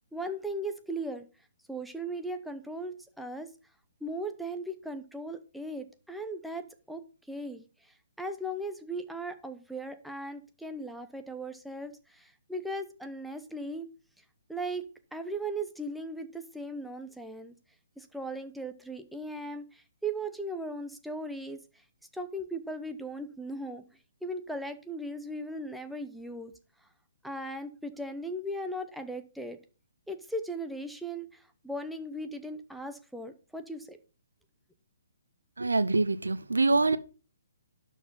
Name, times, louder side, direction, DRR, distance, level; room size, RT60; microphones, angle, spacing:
voice 1, 0.1-1.3 1.7-3.5 4.0-7.0 7.3-13.9 14.5-14.8 15.1-17.5 18.0-21.6 22.1-23.8 24.2-26.5 27.2-29.6 30.1-34.0, right 1 dB, ahead, 0.8 m, -38 dB
voice 2, 35.6-37.0, right 3 dB, 80° right, 0.8 m, -25 dB
11.5 x 4.6 x 5.6 m
figure-of-eight pair, 135°, 0 cm